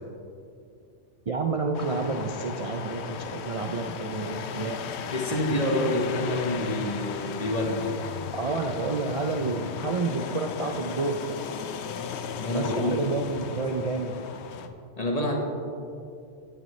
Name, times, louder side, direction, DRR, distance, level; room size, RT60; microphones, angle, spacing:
voice 1, 1.3-4.9 8.4-11.2 12.5-14.2, right 3 dB, 45° right, 2 dB, 0.5 m, -29 dB
sound 1, 1.7-14.7, left 7 dB, 85° left, 0.9 m, -36 dB
voice 2, 5.1-7.9 12.4-13.0 15.0-15.4, left 1 dB, 35° left, 0 dB, 1.4 m, -27 dB
17.0 x 6.6 x 3.2 m, 2.5 s
omnidirectional pair, 1.1 m